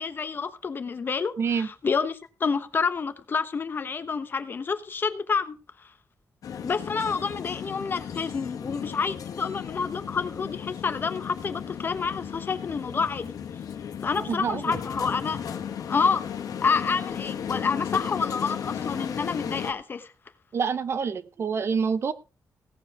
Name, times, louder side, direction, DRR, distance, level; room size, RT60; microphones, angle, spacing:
voice 1, 0.0-5.9 6.6-13.3 14.0-15.4 15.9-16.2 16.6-20.1, left 5 dB, 35° left, 1.0 m, -28 dB
voice 2, 1.4-1.7 14.2-14.6 20.5-22.1, right 6 dB, 45° right, 0.7 m, -27 dB
sound 1, 6.4-19.7, left 8 dB, 90° left, 1.8 m, -35 dB
17.0 x 7.4 x 4.8 m
wide cardioid pair, 175°, 6 cm